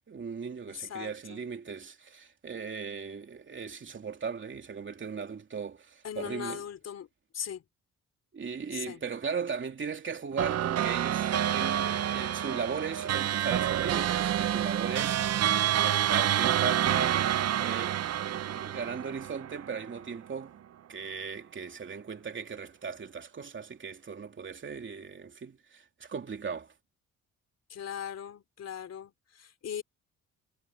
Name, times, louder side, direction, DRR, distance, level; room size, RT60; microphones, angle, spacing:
voice 1, 0.1-6.6 8.3-20.5 20.9-26.7, right 6 dB, 40° right, 3.1 m, -38 dB
voice 2, 0.7-1.4 6.0-7.1 7.3-7.6 8.7-9.0 27.7-29.8, left 8 dB, 55° left, 3.7 m, -39 dB
sound 1, 10.4-20.0, right 10 dB, 55° right, 0.8 m, -28 dB
cardioid pair, 90°, 30 cm